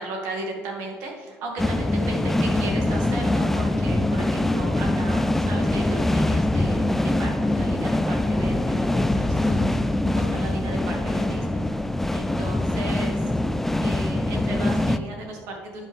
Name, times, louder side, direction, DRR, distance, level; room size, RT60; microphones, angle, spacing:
voice 1, 0.0-11.6 12.1-13.3 13.8-15.9, right 2 dB, 80° right, 0 dB, 2.2 m, -35 dB
sound 1, 1.6-15.0, left 1 dB, 5° left, 0.3 m, -23 dB
10.0 x 3.6 x 7.2 m, 1.5 s
cardioid pair, 155°, 5 cm